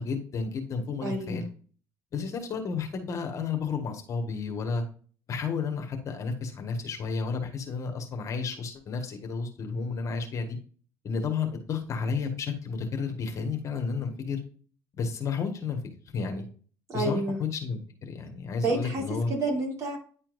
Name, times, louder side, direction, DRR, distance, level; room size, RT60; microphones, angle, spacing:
voice 1, 0.0-1.4 2.1-4.8 5.3-10.6 11.0-14.4 15.0-16.4 16.9-19.3, left 5 dB, 50° left, 4 dB, 1.5 m, -32 dB
voice 2, 1.0-1.4 16.9-17.4 18.6-19.0 19.3-20.0, right 2 dB, 45° right, -1 dB, 3.5 m, -29 dB
9.8 x 4.4 x 2.6 m, 0.42 s
supercardioid pair, 95°, 7 cm